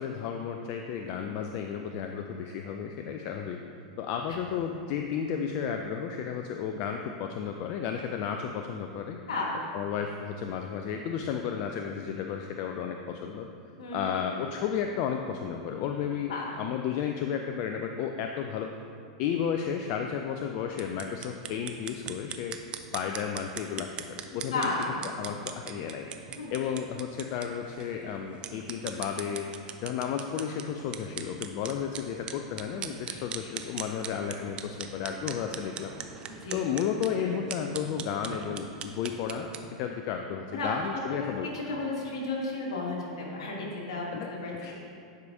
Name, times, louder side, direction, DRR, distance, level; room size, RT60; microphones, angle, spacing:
voice 1, 0.0-3.6 4.0-9.2 9.7-13.5 13.9-18.7 19.2-22.6 22.9-24.8 25.2-26.1 26.5-29.5 29.8-35.9 36.5-39.5 39.8-41.5 44.1-44.3 44.6-44.7, left 8 dB, 50° left, 4 dB, 0.4 m, -33 dB
voice 2, 9.3-9.6 13.8-14.2 16.3-16.6 24.3-25.1 26.4-26.5 36.3-36.8 37.2-37.6 40.5-44.5, left 2 dB, 70° left, -2 dB, 1.5 m, -34 dB
sound 1, 20.7-39.7, right 8 dB, 35° right, 0.4 m, -41 dB
10.5 x 4.8 x 2.7 m, 2.4 s
hypercardioid pair, 95°, 3 cm